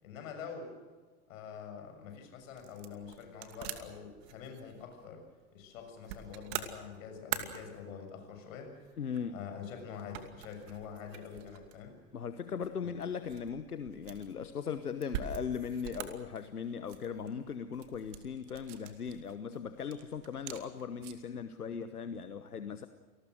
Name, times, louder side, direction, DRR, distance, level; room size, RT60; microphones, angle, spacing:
voice 1, 0.0-0.8 1.3-5.2 5.5-9.0 9.3-12.0 12.8-13.0, left 6 dB, 60° left, 5 dB, 6.9 m, -46 dB
sound 1, 1.8-21.4, right 10 dB, 55° right, 2.6 m, -46 dB
voice 2, 9.0-9.3 12.1-22.9, left 6 dB, 85° left, 11 dB, 1.2 m, -38 dB
29.0 x 19.5 x 6.5 m, 1.4 s
figure-of-eight pair, 90°, 44 cm